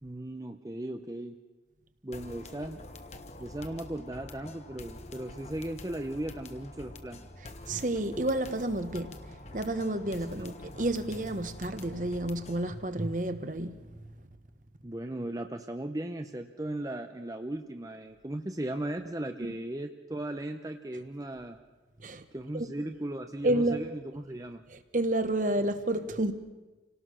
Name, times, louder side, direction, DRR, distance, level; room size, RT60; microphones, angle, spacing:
voice 1, 0.0-1.4 2.0-2.8 3.4-7.3 10.3-10.5 14.8-21.6 22.3-24.6, right 1 dB, 20° right, 0.7 m, -37 dB
sound 1, 2.1-12.8, left 2 dB, 40° left, 1.2 m, -47 dB
voice 2, 7.7-13.8 22.0-22.2 22.5-22.7 23.4-23.8 24.7-26.3, right 1 dB, 45° right, 1.3 m, -30 dB
28.0 x 18.0 x 6.3 m
head